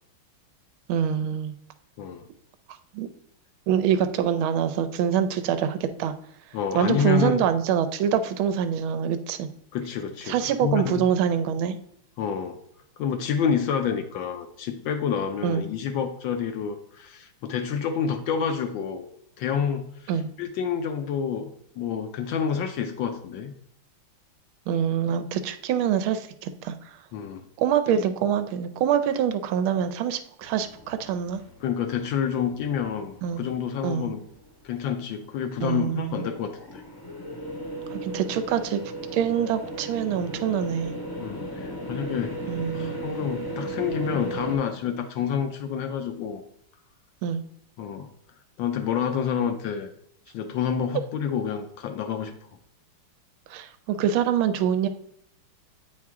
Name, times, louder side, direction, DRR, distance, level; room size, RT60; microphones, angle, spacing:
voice 1, 0.9-1.5 2.9-3.1 3.7-6.1 6.7-9.5 10.3-11.8 15.4-15.7 20.1-20.3 24.7-26.7 27.6-31.4 33.2-33.4 33.8-34.1 35.6-36.3 37.9-38.8 39.1-40.9 42.5-42.9 47.2-47.4 53.5-54.9, right 8 dB, 80° right, 10 dB, 1.3 m, -25 dB
voice 2, 6.5-7.4 9.7-11.0 12.2-12.6 13.0-19.1 19.4-20.1 20.4-23.5 27.1-27.4 31.6-34.2 34.6-36.8 41.2-42.4 42.7-46.4 47.8-48.1 48.6-49.9 50.3-52.3, left 7 dB, 75° left, 7 dB, 1.2 m, -28 dB
sound 1, 30.4-33.5 33.8-34.9 35.3-44.6, right 1 dB, 20° left, 0.5 m, -36 dB
8.4 x 4.6 x 3.5 m, 0.71 s
omnidirectional pair, 2.4 m